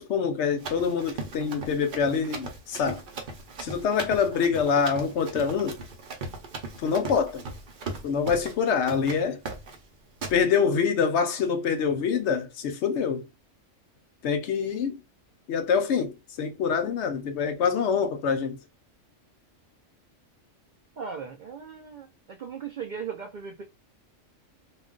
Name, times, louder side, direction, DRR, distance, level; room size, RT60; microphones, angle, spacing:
voice 1, 0.0-3.0 3.6-5.8 6.8-7.4 8.0-9.4 10.3-13.3 14.2-15.0 15.5-18.6, left 6 dB, 65° left, 0.8 m, -25 dB
Run, 0.6-8.6 8.9-9.2 9.5-9.8 10.2-10.4, right 3 dB, 50° right, 0.7 m, -38 dB
voice 2, 21.0-23.6, right 6 dB, 80° right, 0.4 m, -38 dB
2.3 x 2.3 x 3.7 m
omnidirectional pair, 1.3 m